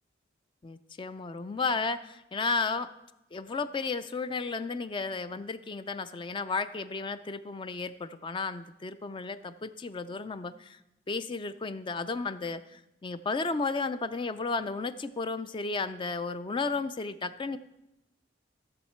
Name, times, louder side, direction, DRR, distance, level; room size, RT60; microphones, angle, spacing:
voice 1, 0.6-2.9 3.3-10.8 11.1-17.6, left 4 dB, 25° left, 12 dB, 0.3 m, -33 dB
14.0 x 7.2 x 4.4 m, 0.90 s
head